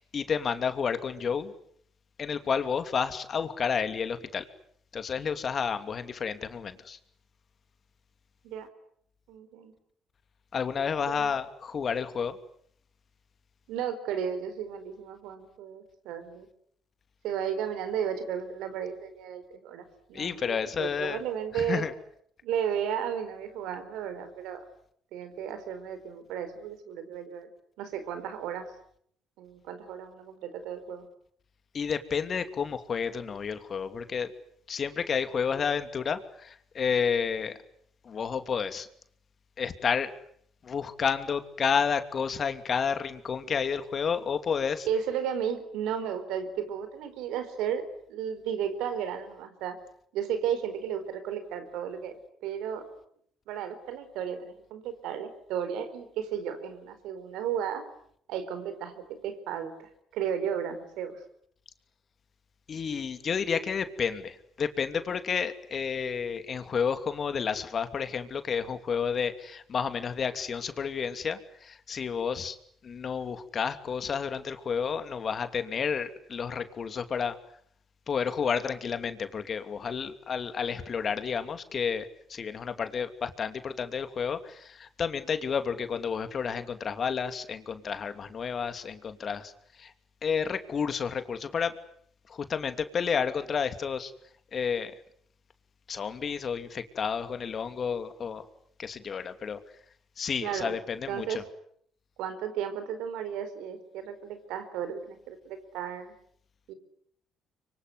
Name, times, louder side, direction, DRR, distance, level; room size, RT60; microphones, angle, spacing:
voice 1, 0.0-1.5 2.2-4.5 4.9-7.0 10.5-12.4 20.1-21.2 21.5-21.9 31.7-34.3 34.7-37.6 38.0-38.9 39.6-40.2 40.6-44.9 62.7-72.6 72.8-77.4 78.1-89.5 89.8-89.9 90.2-91.8 92.3-94.1 94.5-94.9 95.9-98.5 98.8-99.6 100.2-101.4, left 6 dB, 50° left, 10 dB, 2.7 m, -31 dB
voice 2, 9.3-9.7 11.1-11.3 13.7-16.5 17.2-21.9 22.4-24.6 25.1-27.5 27.8-28.7 29.4-31.1 44.8-47.8 48.1-49.8 50.1-52.1 52.4-52.9 53.5-57.8 58.3-61.2 100.4-100.8 101.1-101.4 102.2-106.1 106.7-106.8, right 8 dB, 80° right, 10 dB, 4.3 m, -34 dB
24.5 x 24.5 x 9.7 m, 0.67 s
supercardioid pair, 60°, 0 cm